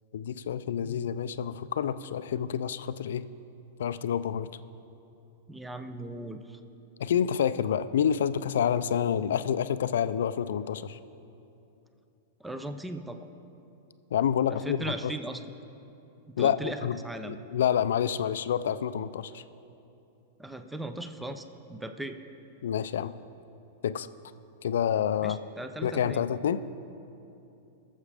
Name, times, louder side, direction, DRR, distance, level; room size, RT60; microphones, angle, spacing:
voice 1, 0.1-3.2 3.8-4.5 7.0-11.0 14.1-15.1 16.4-17.0 17.3-19.4 22.6-23.1 23.8-24.1 24.6-25.4 25.8-26.6, left 9 dB, 80° left, 13 dB, 0.4 m, -28 dB
voice 2, 5.5-6.6 12.4-13.3 14.5-15.4 16.4-17.4 20.4-22.2 25.2-26.2, right 1 dB, 5° right, 8 dB, 0.6 m, -38 dB
21.5 x 7.2 x 3.5 m, 2.8 s
hypercardioid pair, 125°, 0 cm